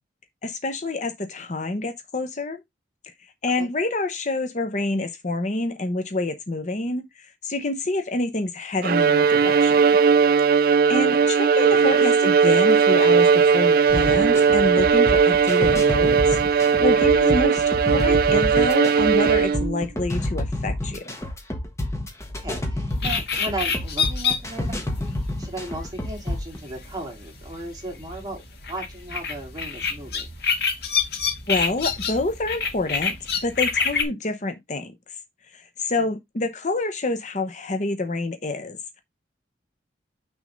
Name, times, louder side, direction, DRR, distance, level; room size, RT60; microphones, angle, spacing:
voice 1, 0.4-2.6 3.0-3.1 3.4-9.9 10.6-21.1 31.5-35.2 35.5-39.0, left 2 dB, 40° left, 0.8 m, -27 dB
Bowed string instrument, 8.8-19.9, right 6 dB, 55° right, 0.3 m, -18 dB
sound 1, 13.9-26.6, left 1 dB, 15° left, 1.4 m, -29 dB
voice 2, 22.4-24.8 25.4-28.4 28.7-30.3, right 1 dB, 20° right, 2.8 m, -35 dB
sound 2, 22.9-34.1, left 5 dB, 60° left, 1.9 m, -28 dB
6.2 x 3.6 x 5.3 m
head